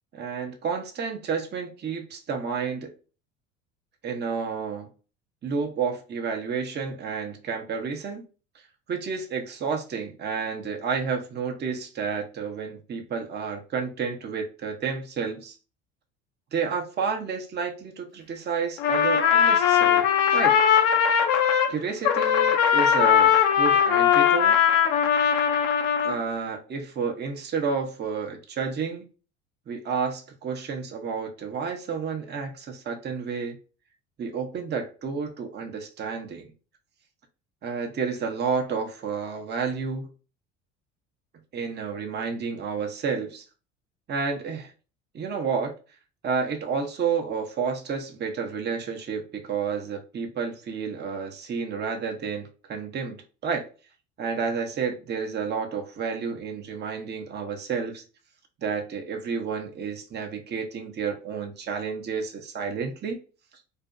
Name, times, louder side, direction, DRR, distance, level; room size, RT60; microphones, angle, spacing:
voice 1, 0.1-2.9 4.0-4.9 5.4-8.2 8.9-15.6 16.5-20.1 20.3-20.6 21.7-24.6 26.0-29.1 29.7-33.6 34.2-36.5 37.6-40.1 41.5-43.4 44.1-44.7 45.1-45.7 46.2-53.7 54.2-58.0 58.6-63.2, right 5 dB, 30° right, 0.7 m, -30 dB
Trumpet, 18.8-21.7 22.0-26.2, left 8 dB, 75° left, 0.6 m, -20 dB
2.5 x 2.1 x 2.5 m
hypercardioid pair, 75°, 36 cm